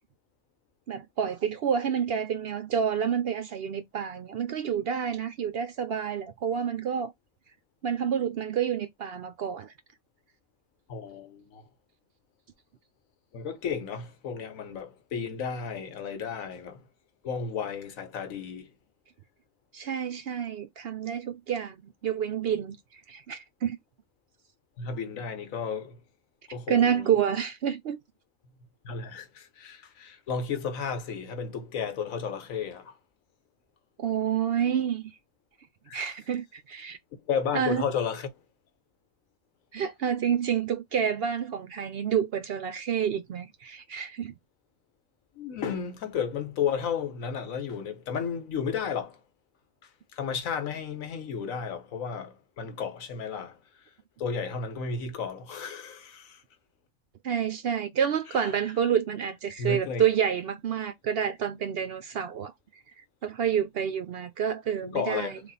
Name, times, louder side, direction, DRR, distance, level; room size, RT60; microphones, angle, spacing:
voice 1, 0.9-7.1 7.8-9.7 19.7-22.8 23.1-23.8 26.7-28.0 34.0-35.1 35.9-37.0 37.5-37.8 39.7-44.3 57.2-62.5 63.2-65.4, right 8 dB, 65° right, 0.6 m, -28 dB
voice 2, 10.9-11.7 13.3-16.9 17.2-18.7 24.8-26.0 26.5-27.1 28.8-33.0 35.9-36.1 37.1-38.4 45.3-49.2 49.8-53.9 54.2-56.4 58.3-58.5 59.6-60.1 64.8-65.4, left 6 dB, 85° left, 1.3 m, -33 dB
3.4 x 2.4 x 4.0 m
omnidirectional pair, 1.4 m